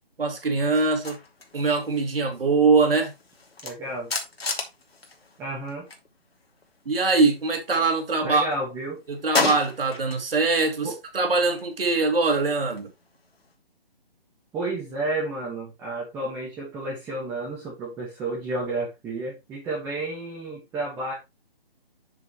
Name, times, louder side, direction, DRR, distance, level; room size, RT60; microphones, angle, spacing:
voice 1, 0.2-1.2 1.5-3.1 6.9-8.5 9.1-12.9, right 3 dB, 65° right, 2.5 m, -22 dB
sound 1, 0.7-6.1 6.3-8.0 8.3-10.4 10.8-13.5, left 3 dB, 80° left, 2.3 m, -34 dB
voice 2, 3.6-4.1 5.4-5.9 8.2-9.0 10.8-11.0 14.5-21.1, right 2 dB, 5° right, 1.4 m, -31 dB
7.1 x 7.0 x 3.0 m
hypercardioid pair, 160°, 30 cm